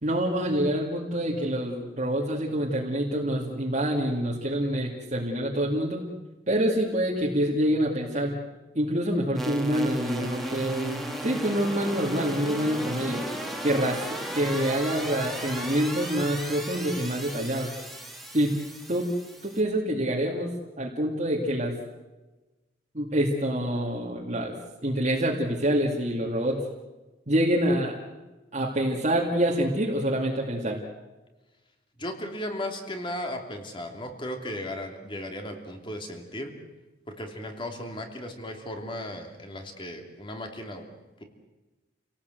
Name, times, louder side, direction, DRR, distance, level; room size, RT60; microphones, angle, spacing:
voice 1, 0.0-6.1 6.5-8.4 8.7-13.3 13.6-17.7 18.3-18.5 18.9-19.1 19.4-20.5 20.8-21.8 22.9-24.5 24.8-26.6 27.3-28.0 28.5-30.8, right 1 dB, 40° right, -3 dB, 2.3 m, -26 dB
sound 1, 9.3-19.6, right 1 dB, ahead, 2.5 m, -35 dB
voice 2, 32.0-36.5 37.1-40.8, left 1 dB, 25° left, 4 dB, 2.9 m, -36 dB
29.0 x 18.0 x 7.9 m, 1.1 s
head